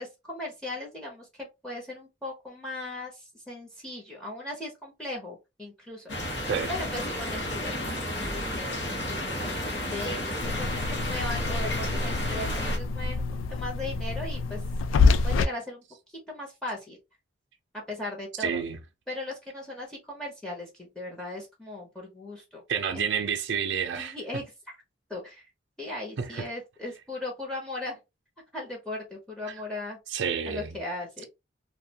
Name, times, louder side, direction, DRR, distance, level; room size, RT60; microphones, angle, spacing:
voice 1, 0.0-6.4 6.7-14.6 15.2-15.8 16.3-17.0 17.9-18.6 19.1-22.6 22.9-23.1 23.9-24.8 25.1-25.4 25.8-28.0 28.5-30.0 30.5-31.3, left 2 dB, 5° left, 0.7 m, -38 dB
sound 1, 6.1-12.8, left 1 dB, 65° left, 0.8 m, -32 dB
sound 2, 10.4-15.5, left 4 dB, 85° left, 0.3 m, -26 dB
voice 2, 18.4-18.8 22.7-24.1 26.2-26.4 30.1-30.8, right 7 dB, 65° right, 0.4 m, -29 dB
2.4 x 2.2 x 2.7 m
head